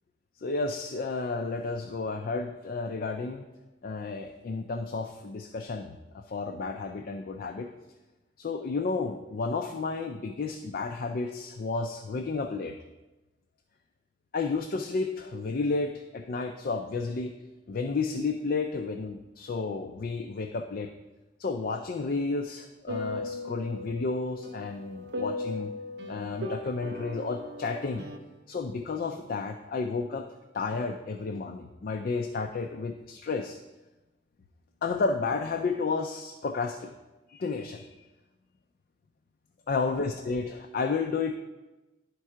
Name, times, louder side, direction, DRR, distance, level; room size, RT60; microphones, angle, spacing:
voice 1, 0.4-3.4 3.8-7.7 8.4-12.8 14.3-17.3 17.7-20.9 21.4-25.7 26.1-28.1 28.5-30.3 30.5-33.6 34.8-36.9 37.3-37.9 39.7-41.4, left 4 dB, 50° left, 5 dB, 0.4 m, -32 dB
sound 1, 22.9-28.2, left 1 dB, 65° right, 0.7 m, -37 dB
11.0 x 3.6 x 4.4 m, 1.1 s
head